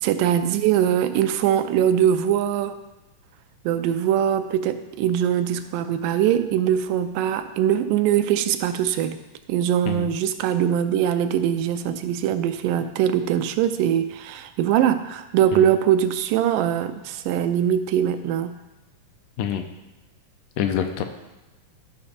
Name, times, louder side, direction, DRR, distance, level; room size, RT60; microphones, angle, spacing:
voice 1, 0.0-2.8 3.7-9.2 9.5-18.6, right 10 dB, 80° right, 9 dB, 2.1 m, -22 dB
voice 2, 20.6-21.0, left 9 dB, 80° left, 6 dB, 2.3 m, -26 dB
13.0 x 5.6 x 4.2 m, 1.0 s
omnidirectional pair, 3.9 m